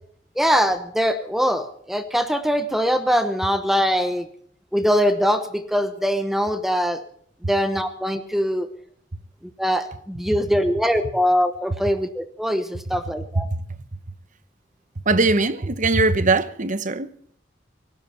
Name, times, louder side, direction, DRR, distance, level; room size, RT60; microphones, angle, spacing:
voice 1, 0.4-4.3 4.7-7.0 7.5-8.7 9.6-13.5, equal, ahead, 1.0 m, -22 dB
voice 2, 15.1-17.1, right 3 dB, 40° right, 1.0 m, -20 dB
18.0 x 16.5 x 4.4 m
head